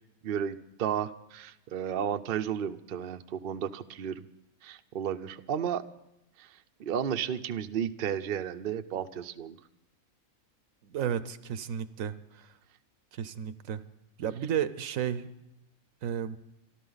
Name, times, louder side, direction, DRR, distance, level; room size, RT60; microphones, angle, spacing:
voice 1, 0.2-4.2 4.6-5.8 6.4-9.6, right 9 dB, 50° right, 8 dB, 0.7 m, -33 dB
voice 2, 10.8-12.5 13.1-13.8 14.2-15.3 16.0-16.4, right 9 dB, 75° right, 14 dB, 1.1 m, -33 dB
26.5 x 12.0 x 4.0 m, 0.89 s
omnidirectional pair, 1.4 m